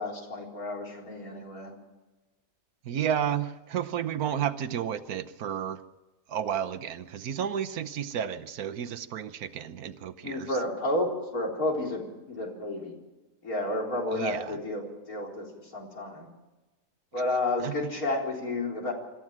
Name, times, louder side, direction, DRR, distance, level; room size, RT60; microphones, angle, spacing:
voice 1, 0.0-1.7 10.2-11.1 11.3-12.9 13.4-16.3 17.1-18.9, left 2 dB, 75° left, -1 dB, 4.6 m, -31 dB
voice 2, 2.9-5.8 6.3-10.5 14.1-14.6 17.6-17.7, right 9 dB, 80° right, 11 dB, 1.4 m, -32 dB
25.5 x 14.0 x 7.4 m, 1.1 s
omnidirectional pair, 1.5 m